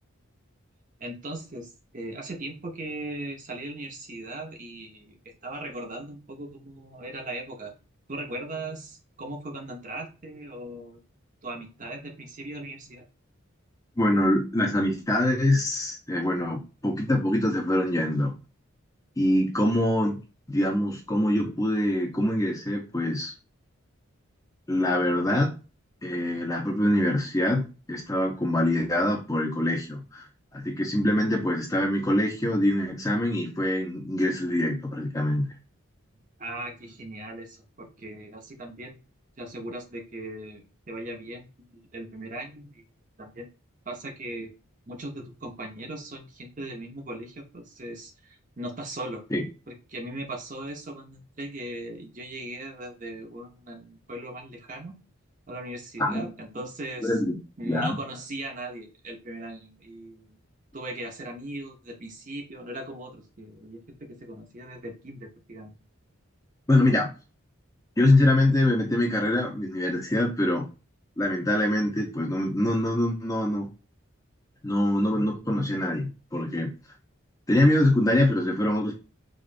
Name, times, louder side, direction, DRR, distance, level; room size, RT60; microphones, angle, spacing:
voice 1, 1.0-5.2 5.4-7.7 8.1-11.0 11.4-13.1 36.4-39.0 39.4-42.8 43.2-43.5 43.9-44.5 44.9-49.2 49.7-55.0 55.5-57.2 57.6-60.4 60.7-65.8, right 1 dB, 35° right, 3 dB, 0.8 m, -38 dB
voice 2, 14.0-18.3 19.2-20.2 20.5-23.3 24.7-25.6 26.0-30.2 30.5-35.5 49.3-49.4 56.0-56.2 57.0-57.3 57.6-58.0 66.7-67.1 68.0-70.7 71.2-73.7 74.6-76.7 77.5-78.9, left 1 dB, 15° left, 1 dB, 0.7 m, -24 dB
5.0 x 2.5 x 2.5 m, 0.31 s
head